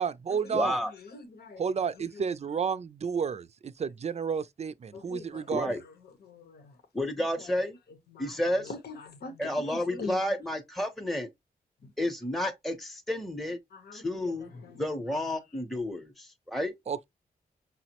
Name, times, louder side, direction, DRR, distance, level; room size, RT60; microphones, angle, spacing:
voice 1, 0.0-0.8 1.6-5.8 16.9-17.0, right 6 dB, 45° right, 0.4 m, -31 dB
voice 2, 0.5-0.9 5.5-5.8 6.9-7.8 8.2-8.7 9.4-11.3 12.0-13.6 13.9-14.5 14.8-16.7, left 1 dB, ahead, 0.7 m, -31 dB
voice 3, 1.0-1.6 4.9-5.4 6.2-6.7 8.1-10.2 11.8-11.9 13.7-14.3 14.6-14.8, left 3 dB, 90° left, 0.9 m, -43 dB
5.6 x 2.0 x 2.8 m
cardioid pair, 85°, 16 cm